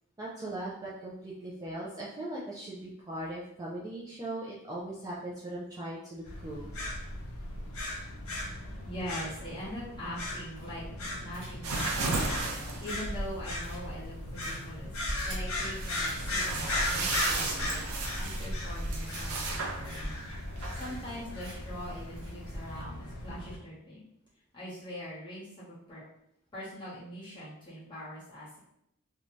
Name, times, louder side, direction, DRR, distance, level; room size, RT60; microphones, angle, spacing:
voice 1, 0.2-6.7, right 1 dB, 15° right, -6 dB, 0.3 m, -39 dB
sound 1, 6.2-23.6, left 1 dB, 70° left, 0.6 m, -37 dB
voice 2, 8.8-10.8 11.2-12.1 12.8-17.8 18.2-20.2 20.7-24.0 24.5-26.0 26.5-28.6, equal, 20° left, -9 dB, 1.1 m, -42 dB
sound 2, 10.6-11.0 11.3-11.8 12.1-15.6 16.0-16.2 16.6-17.1 17.5-18.0 18.3-18.7 19.1-19.2 19.5-19.6 19.8-20.0 20.3-20.4 20.6-21.1 21.4-21.8 22.2-22.3, right 1 dB, 55° right, 1.0 m, -50 dB
sound 3, 11.6-22.8, right 3 dB, 85° right, 0.5 m, -36 dB
2.6 x 2.2 x 3.1 m, 0.76 s
head